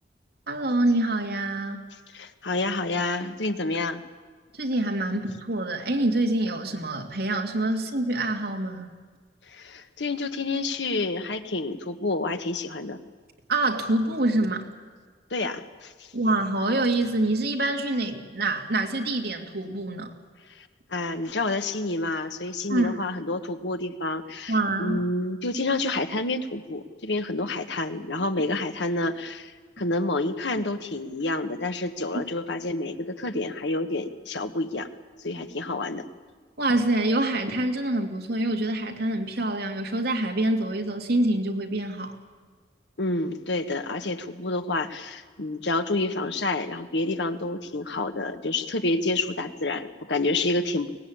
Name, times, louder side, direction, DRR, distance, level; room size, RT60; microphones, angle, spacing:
voice 1, 0.5-1.8 4.5-8.9 13.5-14.7 16.1-20.1 22.7-23.0 24.5-25.0 36.6-42.2, right 2 dB, 65° right, 2 dB, 2.5 m, -26 dB
voice 2, 2.1-4.0 9.5-13.0 15.3-16.1 20.6-34.9 35.2-36.0 43.0-50.9, left 2 dB, 85° left, 8 dB, 1.4 m, -29 dB
23.0 x 19.0 x 8.7 m, 1.5 s
head